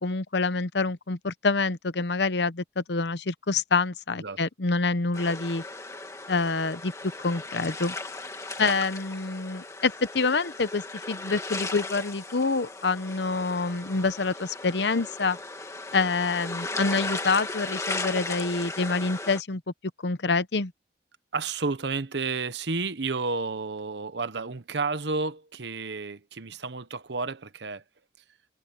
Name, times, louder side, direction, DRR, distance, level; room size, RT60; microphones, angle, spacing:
voice 1, 0.0-5.6 6.3-6.9 7.2-7.9 8.6-15.4 15.9-19.6 20.0-20.7, left 3 dB, 75° left, 0.9 m, -26 dB
sound 1, 5.1-19.4, left 3 dB, 15° left, 2.2 m, -36 dB
voice 2, 21.3-27.8, right 4 dB, 75° right, 1.0 m, -31 dB
head